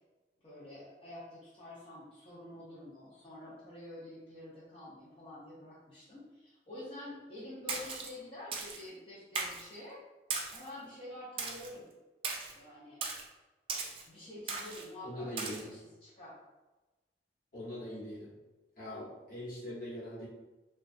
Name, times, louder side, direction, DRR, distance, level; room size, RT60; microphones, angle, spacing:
voice 1, 0.4-10.0 10.5-11.9 12.5-13.0 14.1-16.4, left 1 dB, 30° left, -10 dB, 0.6 m, -48 dB
Splash splatter, 7.7-8.1 8.5-8.8 9.4-9.7 10.3-10.7 11.4-11.7 12.2-12.5 13.0-13.2 13.7-14.0 14.5-14.8 15.4-15.6, right 4 dB, 30° right, 0.3 m, -37 dB
voice 2, 15.0-15.7 17.5-18.3 18.8-20.3, left 1 dB, 55° left, -8 dB, 1.1 m, -42 dB
2.8 x 2.2 x 2.5 m, 1.1 s
head